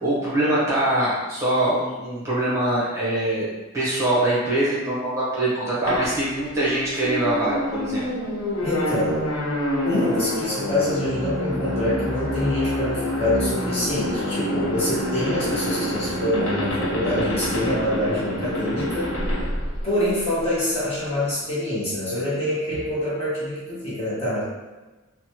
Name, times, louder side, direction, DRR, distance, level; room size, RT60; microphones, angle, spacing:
voice 1, 0.0-3.5 3.7-8.0, right 1 dB, 15° right, -9 dB, 0.8 m, -23 dB
sound 1, 5.9-20.4, left 1 dB, 75° left, 0.7 m, -27 dB
voice 2, 8.6-9.2 9.8-19.2 19.8-24.4, left 1 dB, 25° left, -9 dB, 0.9 m, -25 dB
3.0 x 2.1 x 2.8 m, 1.2 s
head